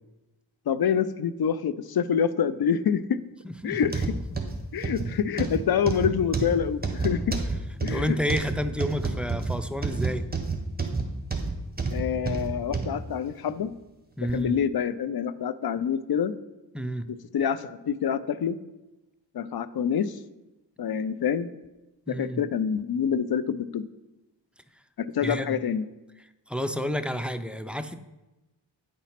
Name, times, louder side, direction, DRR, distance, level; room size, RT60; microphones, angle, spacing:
voice 1, 0.7-3.2 3.6-4.1 4.7-7.4 7.8-8.2 11.9-13.7 14.3-16.3 17.1-18.6 19.3-20.2 20.8-21.5 22.1-23.8 25.0-25.9, left 7 dB, 55° left, 15 dB, 0.5 m, -26 dB
voice 2, 3.4-3.8 7.9-10.3 14.2-14.6 16.7-17.1 22.1-22.4 25.2-25.6 26.5-27.9, equal, 5° right, 10 dB, 0.4 m, -30 dB
sound 1, 3.8-12.9 13.5-13.6 14.3-14.4, right 4 dB, 20° right, 1.2 m, -29 dB
9.1 x 4.1 x 5.7 m, 1.1 s
wide cardioid pair, 55°, 46 cm